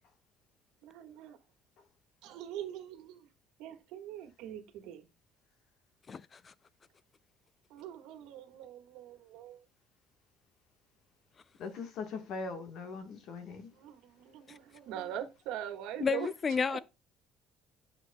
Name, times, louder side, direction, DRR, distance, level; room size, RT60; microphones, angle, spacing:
voice 1, 0.8-1.4 2.2-3.3 3.6-5.1 7.7-9.6 13.5-16.3 16.7-16.8, right 10 dB, 85° right, 1.4 m, -43 dB
voice 2, 6.1-6.5 16.0-16.8, left 6 dB, 25° left, 0.3 m, -31 dB
voice 3, 11.6-13.7, left 4 dB, 55° left, 1.3 m, -40 dB
9.5 x 5.9 x 2.2 m
cardioid pair, 165°, 0 cm